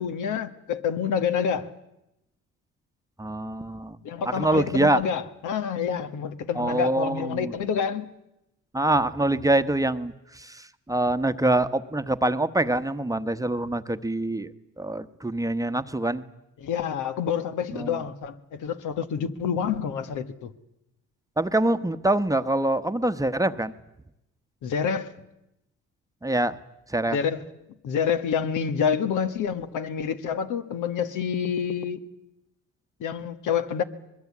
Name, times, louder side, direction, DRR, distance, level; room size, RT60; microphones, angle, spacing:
voice 1, 0.0-1.7 4.0-8.1 16.6-20.5 24.6-25.1 27.1-27.4 27.8-32.0 33.0-33.8, left 7 dB, 80° left, 1.4 m, -28 dB
voice 2, 3.2-4.0 4.2-5.0 6.5-7.5 8.7-14.5 14.8-16.2 17.7-18.0 21.4-23.7 26.2-26.6 26.9-27.2, right 1 dB, 10° right, 1.0 m, -25 dB
25.0 x 21.0 x 8.4 m
cardioid pair, 90°, 30 cm